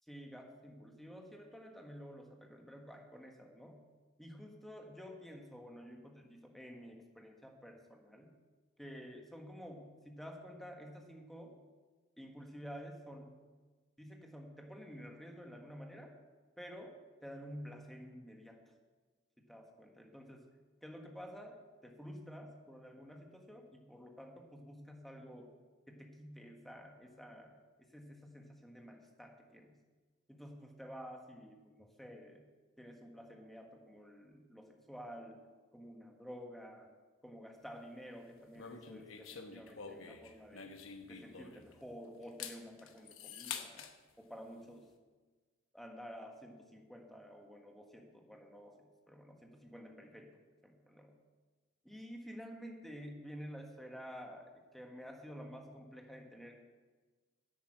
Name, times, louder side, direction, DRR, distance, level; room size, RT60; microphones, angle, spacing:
voice 1, 0.1-3.8 4.2-8.3 8.8-11.6 12.2-13.4 14.0-16.1 16.6-17.0 17.2-18.6 19.4-20.5 20.8-25.5 25.9-29.8 30.3-32.4 32.8-35.4 35.7-36.9 37.2-40.7 41.1-43.8 44.2-44.9 45.7-50.3 50.6-51.1 51.8-56.6, equal, ahead, 2 dB, 1.5 m, -51 dB
sound 1, 38.6-41.8 42.2-43.9, left 6 dB, 70° left, 1.0 m, -47 dB
11.0 x 8.9 x 7.6 m, 1.3 s
head